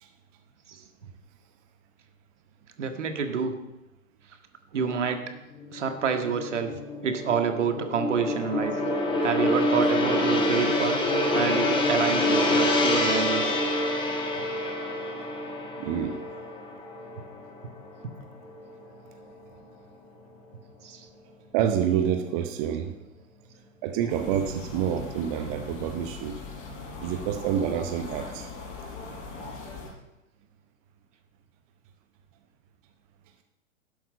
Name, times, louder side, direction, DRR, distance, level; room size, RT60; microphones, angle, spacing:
voice 1, 2.8-3.5 4.7-5.2 5.7-6.7 7.0-8.8 9.2-11.0 11.3-13.6 18.0-18.1 20.8-21.1, right 6 dB, 60° right, 6 dB, 1.8 m, -28 dB
Gong, 5.6-18.1 18.4-18.7, left 1 dB, 10° left, 1.7 m, -26 dB
voice 2, 15.8-16.2 21.5-23.0 23.8-26.4 27.0-28.5, right 9 dB, 25° right, 7 dB, 0.8 m, -28 dB
sound 1, 24.1-29.9, left 2 dB, 30° left, 5.3 m, -39 dB
12.0 x 11.0 x 5.5 m, 0.98 s
figure-of-eight pair, 110°, 41 cm